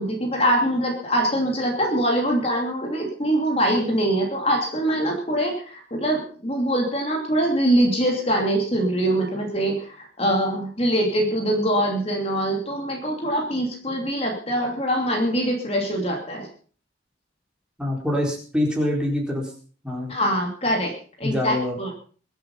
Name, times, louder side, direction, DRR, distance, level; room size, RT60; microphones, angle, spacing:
voice 1, 0.0-16.5 20.1-20.9 21.2-21.9, right 1 dB, 30° left, 1 dB, 2.9 m, -23 dB
voice 2, 17.8-19.5 19.8-20.1 21.2-21.8, left 1 dB, 5° right, -1 dB, 4.2 m, -25 dB
23.0 x 8.3 x 5.6 m, 0.43 s
head